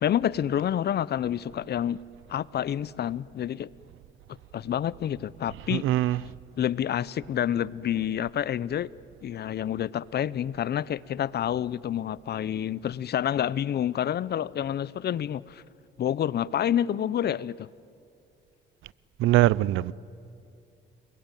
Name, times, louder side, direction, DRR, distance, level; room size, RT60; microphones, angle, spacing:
voice 1, 0.0-2.0 2.3-3.7 4.5-5.8 6.6-8.9 9.2-15.6 16.0-17.7, left 10 dB, 55° left, 0.7 m, -28 dB
voice 2, 5.7-6.2 19.2-19.9, right 15 dB, 85° right, 0.6 m, -22 dB
29.5 x 21.0 x 9.2 m
cardioid pair, 90°, 20 cm